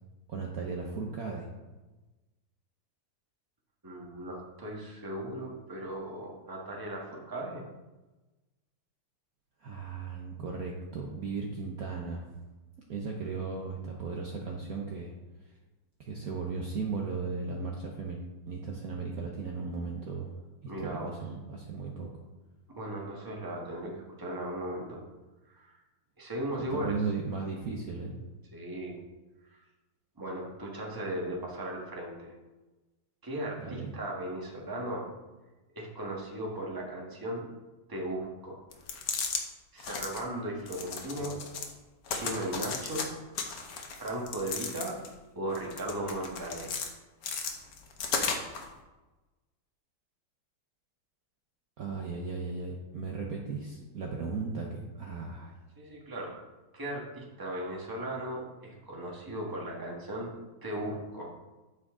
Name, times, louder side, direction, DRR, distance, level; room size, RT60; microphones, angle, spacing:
voice 1, 0.3-1.5 9.6-12.3 12.9-15.1 16.0-18.2 18.5-20.3 20.6-22.1 26.7-28.1 33.6-33.9 51.8-55.5, right 4 dB, 55° right, -1 dB, 1.2 m, -36 dB
voice 2, 3.8-7.6 20.7-21.1 22.7-25.0 25.5-25.7 26.2-27.0 28.5-29.0 29.5-29.6 30.2-32.3 33.2-35.1 35.7-37.5 37.9-38.6 39.7-41.4 42.1-43.1 44.0-45.0 45.3-46.8 55.8-56.4 56.7-60.3 60.6-61.3, right 1 dB, 10° right, -2 dB, 1.4 m, -37 dB
sound 1, 38.7-39.4 39.8-40.2 40.7-41.7 42.1-43.1 43.4-45.1 45.6-46.9 47.2-48.7, left 5 dB, 55° left, 1.3 m, -35 dB
8.5 x 7.3 x 3.7 m, 1.1 s
omnidirectional pair, 2.1 m